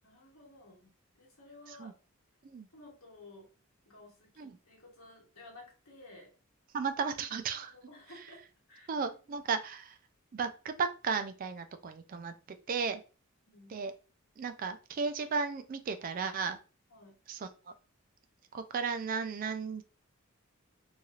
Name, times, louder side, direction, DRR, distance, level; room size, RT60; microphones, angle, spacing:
voice 1, 0.0-0.9 1.1-1.9 2.7-3.5 3.8-6.3 7.5-8.4 8.7-9.2 13.5-13.8 16.9-17.2, left 2 dB, 80° left, -2 dB, 1.2 m, -54 dB
voice 2, 6.7-7.7 8.9-10.0 10.3-13.0 13.7-13.9 14.4-16.6 17.3-17.7 18.5-19.8, right 5 dB, 40° right, 9 dB, 0.3 m, -35 dB
3.1 x 2.8 x 2.3 m, 0.34 s
head